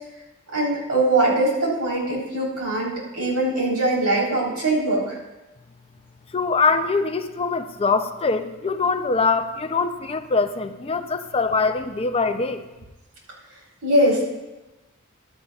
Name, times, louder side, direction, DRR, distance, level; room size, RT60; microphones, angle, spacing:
voice 1, 0.5-5.2 13.8-14.3, right 1 dB, 80° right, -4 dB, 3.9 m, -22 dB
voice 2, 6.3-12.6, left 4 dB, 25° left, 9 dB, 0.4 m, -23 dB
14.5 x 12.5 x 2.4 m, 1.1 s
head